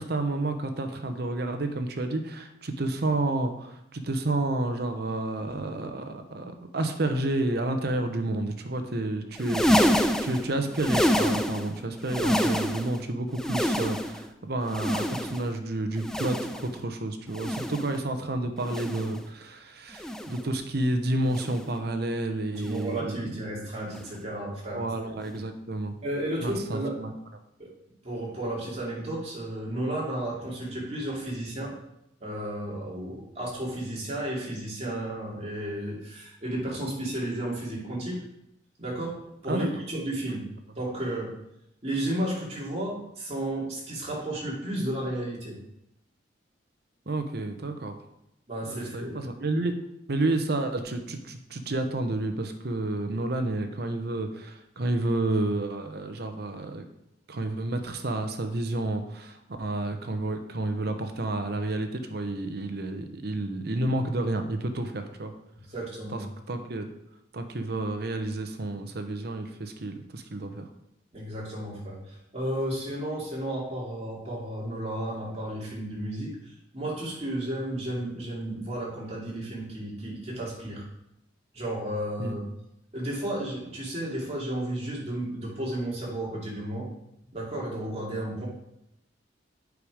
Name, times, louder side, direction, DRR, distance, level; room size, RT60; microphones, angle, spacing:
voice 1, 0.0-23.2 24.7-25.9 26.4-27.1 39.5-39.7 47.1-48.0 48.7-49.7 50.1-56.8 57.3-65.3 66.1-66.2 66.5-66.9 67.3-70.7 82.2-82.3, right 2 dB, 60° right, 7 dB, 0.8 m, -30 dB
sound 1, 9.3-11.7 12.0-13.0 13.3-14.3 14.7-15.5 16.0-16.7 17.3-18.0 18.6-19.2 19.9-20.5 21.3-21.7 22.6-22.9 23.9-24.1 25.3-25.4, equal, 5° left, 0.5 m, -27 dB
voice 2, 22.6-25.1 26.0-26.9 27.6-27.7 28.0-31.7 32.2-38.2 38.8-40.4 40.8-41.3 41.8-45.6 48.5-49.3 65.7-66.2 71.1-80.8 81.5-82.4 82.9-86.9 87.3-88.5, right 1 dB, 35° right, -4 dB, 2.6 m, -33 dB
8.2 x 5.1 x 4.9 m, 0.82 s
head